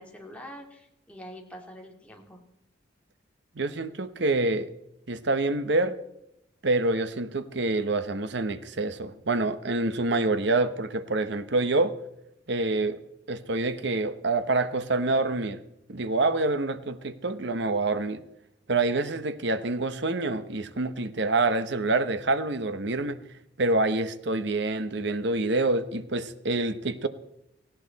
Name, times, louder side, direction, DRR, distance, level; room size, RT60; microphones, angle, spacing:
voice 1, 0.0-2.4, equal, 5° left, 2.6 m, -45 dB
voice 2, 3.6-4.7 5.1-6.0 6.6-12.0 12.5-13.0 13.3-15.6 15.9-18.2 18.7-23.2 23.6-27.1, right 2 dB, 65° right, 1.0 m, -26 dB
18.0 x 16.5 x 4.1 m
head